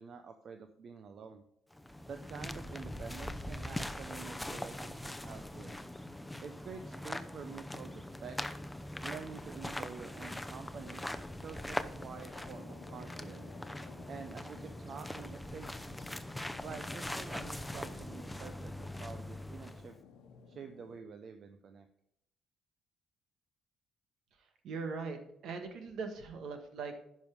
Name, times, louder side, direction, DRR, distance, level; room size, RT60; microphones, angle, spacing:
voice 1, 0.0-1.4 2.1-5.8 6.4-8.4 9.0-11.0 11.4-13.5 14.1-15.8 16.6-20.0 20.5-21.9, right 6 dB, 55° right, 7 dB, 0.7 m, -48 dB
sound 1, 1.7-20.0, left 1 dB, 5° left, 0.6 m, -42 dB
sound 2, 10.8-21.0, left 6 dB, 80° left, 1.0 m, -57 dB
voice 2, 24.6-27.0, right 4 dB, 75° right, 6 dB, 1.5 m, -40 dB
10.5 x 5.5 x 4.8 m, 0.77 s
supercardioid pair, 75°, 0 cm